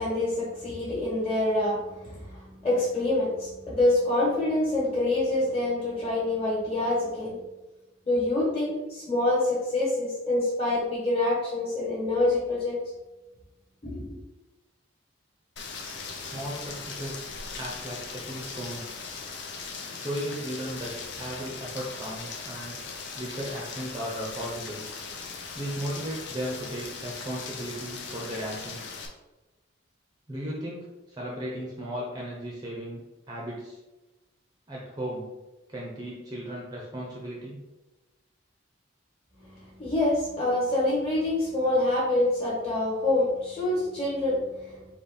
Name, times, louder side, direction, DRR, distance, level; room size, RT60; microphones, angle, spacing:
voice 1, 0.0-7.4 8.0-12.8 13.8-14.0 39.4-44.9, left 2 dB, 25° left, -7 dB, 1.4 m, -26 dB
Rain, 15.6-29.1, left 4 dB, 60° left, 0.6 m, -39 dB
voice 2, 16.3-17.2 17.6-18.9 19.9-22.8 23.2-24.8 25.5-28.9 30.3-33.0 33.3-33.8 34.7-35.3 35.7-37.6, equal, 20° right, -3 dB, 0.6 m, -36 dB
4.1 x 3.0 x 4.1 m, 1.1 s
head